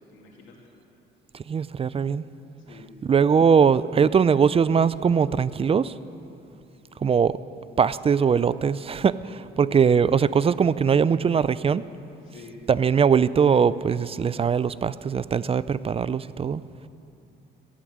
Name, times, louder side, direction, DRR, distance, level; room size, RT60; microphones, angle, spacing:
voice 1, 0.1-0.6 2.7-3.0 6.7-7.0 9.5-10.0 12.3-12.6, left 4 dB, 80° left, -1 dB, 2.6 m, -49 dB
voice 2, 1.5-2.2 3.0-5.9 7.0-7.4 7.8-11.8 12.7-16.6, right 6 dB, 30° right, 17 dB, 0.3 m, -21 dB
14.0 x 9.2 x 7.4 m, 2.6 s
cardioid pair, 90°, 20 cm